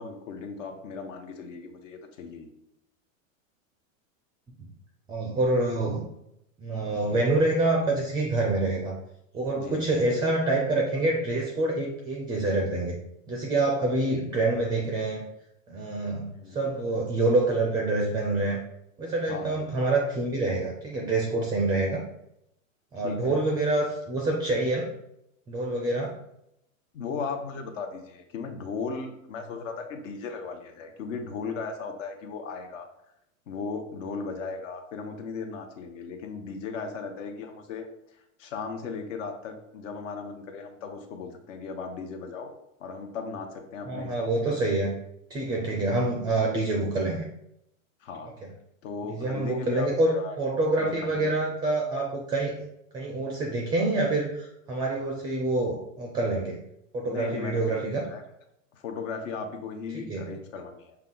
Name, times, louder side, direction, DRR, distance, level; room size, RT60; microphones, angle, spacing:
voice 1, 0.0-2.5 9.5-9.9 16.3-16.7 19.3-19.8 23.0-23.4 26.9-32.9 33.5-37.9 38.4-42.5 42.8-44.3 48.0-48.3 48.8-49.9 50.1-50.4 50.8-51.4 57.0-58.2 58.7-61.0, left 5 dB, 65° left, 5 dB, 0.9 m, -37 dB
voice 2, 5.1-6.1 6.6-9.0 9.3-13.0 13.3-15.2 15.7-18.6 19.0-22.0 22.9-24.9 25.5-26.1 43.9-44.9 45.3-47.3 49.0-52.6 52.9-56.6 56.9-58.1 59.9-60.3, right 2 dB, 10° right, 0 dB, 0.4 m, -26 dB
5.6 x 2.3 x 3.8 m, 0.80 s
supercardioid pair, 130°, 41 cm